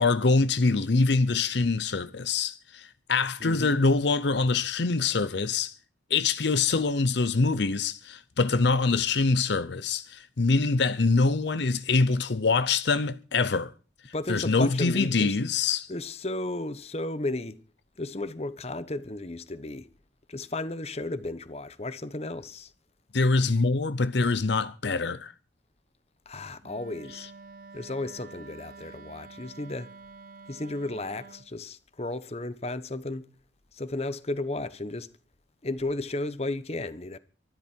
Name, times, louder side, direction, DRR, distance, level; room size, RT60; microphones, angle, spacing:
voice 1, 0.0-5.7 6.1-13.7 14.3-15.9 23.1-25.3, left 3 dB, 65° left, 0.7 m, -24 dB
voice 2, 3.4-3.8 14.1-15.4 15.9-17.6 18.0-19.9 20.3-22.7 26.3-27.3 27.7-29.9 30.5-33.3 33.7-35.1 35.6-37.2, left 2 dB, 35° left, 1.0 m, -34 dB
Wind instrument woodwind instrument, 26.6-31.5, right 4 dB, 45° right, 1.0 m, -48 dB
24.0 x 12.0 x 4.5 m
head